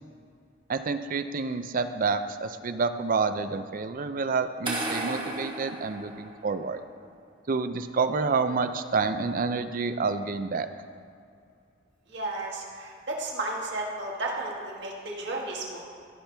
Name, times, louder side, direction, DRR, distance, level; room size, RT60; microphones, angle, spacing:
voice 1, 0.7-6.8 7.5-10.7, right 4 dB, 45° right, 10 dB, 0.4 m, -28 dB
sound 1, 4.6-6.7, right 1 dB, 25° right, 1.3 m, -34 dB
voice 2, 12.1-15.9, right 2 dB, 60° right, -2 dB, 1.7 m, -33 dB
16.0 x 5.9 x 3.4 m, 2.4 s
head